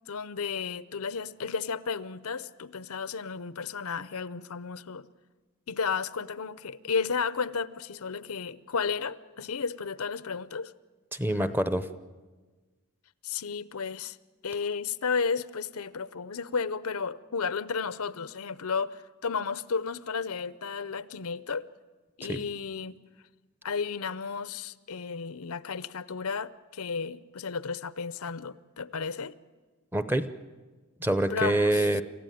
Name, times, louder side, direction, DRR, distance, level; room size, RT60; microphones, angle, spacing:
voice 1, 0.0-5.1 5.7-10.7 13.2-14.2 14.4-21.7 22.2-23.0 23.6-29.3 31.3-31.9, left 5 dB, 80° left, 0.7 m, -33 dB
voice 2, 11.1-11.9 22.2-22.4 29.9-30.3 31.0-32.0, right 1 dB, 10° right, 0.7 m, -26 dB
27.5 x 15.0 x 9.2 m
head